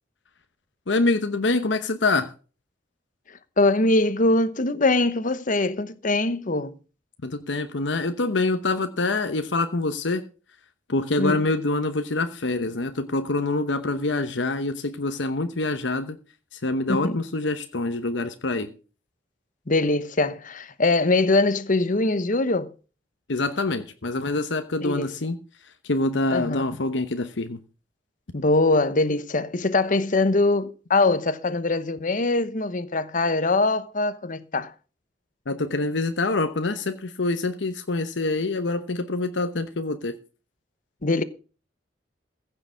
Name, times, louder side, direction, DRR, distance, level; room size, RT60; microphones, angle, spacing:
voice 1, 0.9-2.3 7.2-10.2 10.9-16.2 16.5-18.7 23.3-25.4 25.8-27.6 35.5-40.1, left 2 dB, 75° left, 1.0 m, -25 dB
voice 2, 3.6-6.8 11.2-11.5 16.9-17.2 19.7-22.7 24.8-25.1 26.3-26.6 28.3-34.7 41.0-41.2, left 2 dB, 45° left, 1.1 m, -22 dB
15.5 x 6.8 x 6.3 m
head